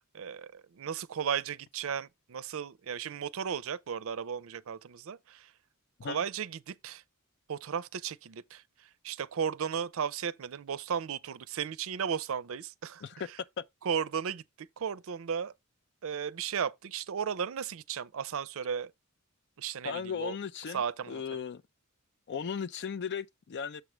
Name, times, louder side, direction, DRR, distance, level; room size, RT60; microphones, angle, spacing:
voice 1, 0.1-5.5 6.0-7.0 7.5-13.4 13.8-15.5 16.0-18.9 19.6-20.4 20.7-21.4, right 7 dB, 70° right, 0.5 m, -35 dB
voice 2, 19.8-20.8 21.1-21.6 22.3-23.8, left 6 dB, 55° left, 0.4 m, -36 dB
7.1 x 3.2 x 6.0 m
head